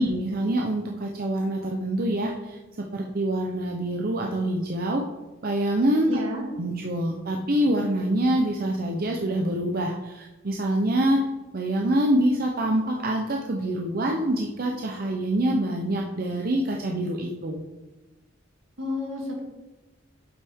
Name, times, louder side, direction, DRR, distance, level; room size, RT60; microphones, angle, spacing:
voice 1, 0.0-5.0 5.4-6.2 6.6-11.3 11.5-17.6, right 1 dB, 45° right, 0 dB, 0.6 m, -25 dB
voice 2, 6.1-6.5 18.8-19.4, left 1 dB, 75° right, -1 dB, 2.0 m, -31 dB
8.1 x 5.6 x 3.6 m, 1.1 s
head